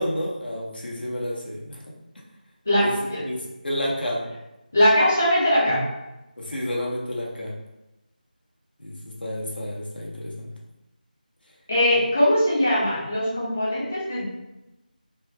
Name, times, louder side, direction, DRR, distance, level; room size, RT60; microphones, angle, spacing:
voice 1, 0.0-1.9 2.8-2.9 3.2-3.4 3.6-4.2 6.4-7.5 8.8-10.5, left 1 dB, 85° left, -3 dB, 1.0 m, -30 dB
voice 2, 2.7-3.2 4.7-5.9 11.7-14.3, left 1 dB, 15° left, -7 dB, 0.4 m, -21 dB
3.3 x 3.2 x 2.2 m, 0.96 s
figure-of-eight pair, 180°, 5 cm